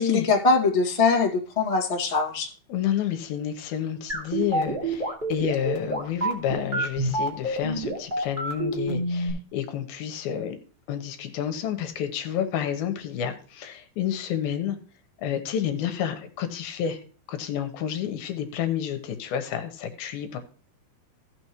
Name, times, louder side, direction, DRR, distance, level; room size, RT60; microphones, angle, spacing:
voice 1, 0.1-2.5, left 4 dB, 30° left, -1 dB, 0.6 m, -22 dB
voice 2, 2.7-10.6 10.9-14.8 15.2-17.0 17.3-20.4, left 9 dB, 75° left, 7 dB, 2.7 m, -29 dB
sound 1, 4.1-9.3, right 2 dB, 15° right, 2.3 m, -27 dB
16.0 x 6.2 x 3.0 m, 0.40 s
omnidirectional pair, 4.5 m